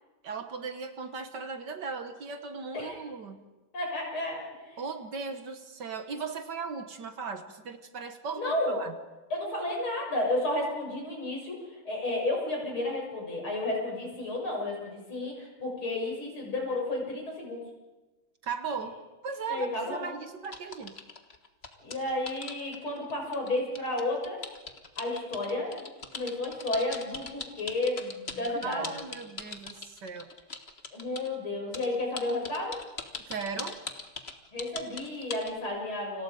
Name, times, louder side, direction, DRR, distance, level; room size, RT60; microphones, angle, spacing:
voice 1, 0.2-3.5 4.8-8.9 18.4-21.0 28.6-30.3 33.3-33.8, right 5 dB, 55° right, 8 dB, 1.9 m, -37 dB
voice 2, 3.7-4.8 8.3-8.8 9.3-17.6 19.5-20.1 21.8-24.4 25.0-28.9 30.9-32.8 34.5-36.2, left 2 dB, 75° left, 0 dB, 7.6 m, -32 dB
sound 1, 20.4-31.3 31.7-35.6, left 4 dB, 30° left, 1.5 m, -40 dB
30.0 x 26.0 x 5.1 m, 1.1 s
omnidirectional pair, 2.3 m